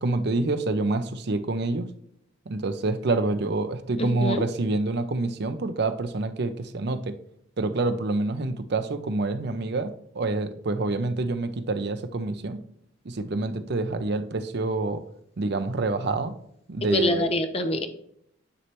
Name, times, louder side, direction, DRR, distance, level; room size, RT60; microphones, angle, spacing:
voice 1, 0.0-1.9 2.5-7.1 7.6-12.6 13.0-15.0 15.4-16.3 16.7-17.3, right 2 dB, 55° right, 9 dB, 0.6 m, -27 dB
voice 2, 4.0-4.5 16.9-17.9, left 2 dB, 30° left, 7 dB, 0.7 m, -25 dB
9.6 x 3.2 x 3.0 m, 0.70 s
head